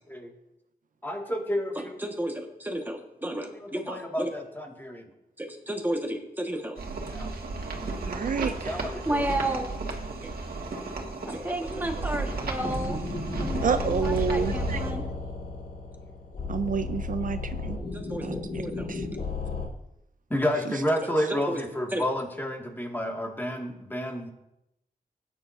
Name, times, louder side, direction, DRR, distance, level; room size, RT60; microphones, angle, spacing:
voice 1, 1.0-2.0 3.6-5.0 7.1-7.3 8.4-9.2 10.6-10.9 20.3-24.3, equal, 15° left, 0 dB, 2.1 m, -30 dB
voice 2, 1.7-4.3 5.4-6.8 8.3-8.6 9.0-9.7 10.2-10.3 11.2-13.0 13.4-15.0 17.7-18.9 21.3-21.6 21.9-22.0, right 1 dB, 10° right, 2 dB, 1.6 m, -33 dB
sound 1, 6.8-14.9, right 3 dB, 75° right, 1.8 m, -34 dB
voice 3, 8.1-8.9 13.6-14.8 16.5-17.8 18.2-18.4 18.9-19.0, right 6 dB, 60° right, 11 dB, 0.4 m, -29 dB
sound 2, 12.6-19.7, left 3 dB, 75° left, 2.2 m, -33 dB
18.0 x 9.3 x 2.7 m, 0.85 s
wide cardioid pair, 95°, 16 cm